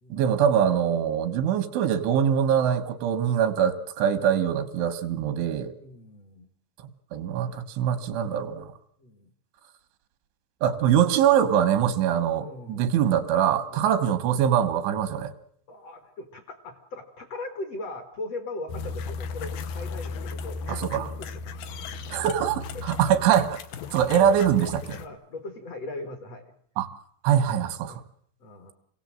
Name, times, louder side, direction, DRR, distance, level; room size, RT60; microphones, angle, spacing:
voice 1, 0.1-5.7 7.1-8.7 10.6-15.3 20.7-21.1 22.1-23.6 23.9-25.0 26.8-26.9 27.2-28.0, right 9 dB, 85° right, 10 dB, 3.8 m, -23 dB
voice 2, 5.7-6.5 9.0-9.3 12.4-12.9 13.7-14.0 15.7-21.6 22.1-22.3 22.7-22.9 24.9-26.5 27.8-28.0 28.4-28.7, left 2 dB, 50° left, 6 dB, 2.1 m, -39 dB
sound 1, 18.7-25.1, left 4 dB, 70° left, 2.5 m, -36 dB
27.5 x 17.5 x 7.6 m, 0.65 s
omnidirectional pair, 5.2 m